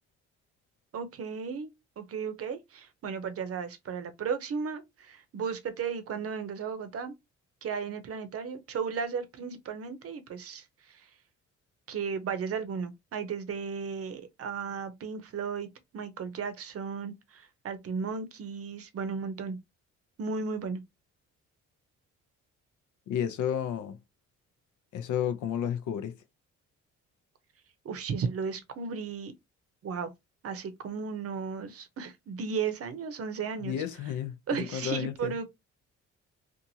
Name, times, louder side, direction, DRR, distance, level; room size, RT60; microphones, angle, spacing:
voice 1, 0.9-1.7 2.0-7.1 7.6-10.6 11.0-11.1 11.9-15.7 15.9-19.6 20.2-20.8 27.8-29.3 29.8-30.1 30.4-33.8 34.5-35.4, right 6 dB, 50° right, 0.7 m, -35 dB
voice 2, 23.1-24.0 24.9-26.1 33.6-35.4, left 9 dB, 80° left, 0.6 m, -32 dB
2.7 x 2.4 x 2.7 m
cardioid pair, 90°, 30 cm